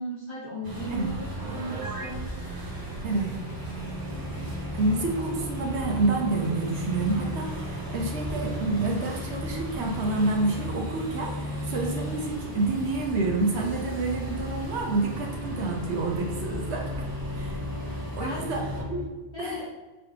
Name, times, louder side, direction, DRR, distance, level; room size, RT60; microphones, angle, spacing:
voice 1, 0.0-2.3 18.2-18.5 19.3-19.7, equal, 35° left, -6 dB, 0.5 m, -36 dB
sound 1, 0.6-18.8, right 2 dB, 20° right, 0.8 m, -37 dB
Piano, 1.4-2.2, right 3 dB, 50° right, 0.4 m, -38 dB
sound 2, 2.6-19.1, left 2 dB, 90° left, 1.5 m, -37 dB
voice 2, 4.7-16.9 17.3-17.6 18.2-19.0 19.4-19.7, right 2 dB, 70° right, 0 dB, 1.0 m, -28 dB
5.4 x 3.2 x 2.8 m, 1.2 s
omnidirectional pair, 1.2 m